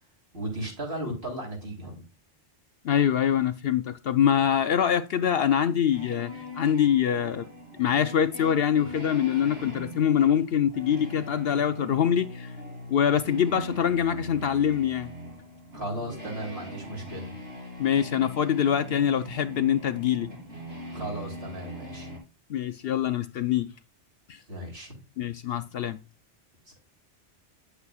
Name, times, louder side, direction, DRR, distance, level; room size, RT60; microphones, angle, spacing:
voice 1, 0.3-2.0 15.7-17.3 20.9-22.1 24.5-25.0 26.7-26.8, right 1 dB, 55° right, 3.9 m, -36 dB
voice 2, 2.8-7.5 7.8-12.5 12.9-15.1 17.8-20.3 22.5-23.7 24.3-24.4 25.2-26.0, left 9 dB, 65° left, 0.7 m, -24 dB
sound 1, 5.9-22.2, equal, 75° right, 3.9 m, -41 dB
9.7 x 8.1 x 2.4 m
omnidirectional pair, 1.2 m